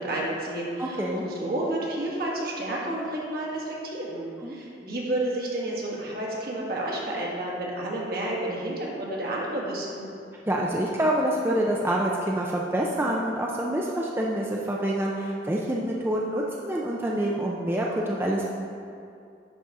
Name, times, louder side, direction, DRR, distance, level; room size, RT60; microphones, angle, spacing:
voice 1, 0.0-10.1, right 1 dB, 60° right, -4 dB, 1.7 m, -30 dB
voice 2, 0.8-1.3 4.4-4.5 10.5-18.5, right 1 dB, 15° right, -3 dB, 0.5 m, -27 dB
10.5 x 4.1 x 4.7 m, 2.5 s
head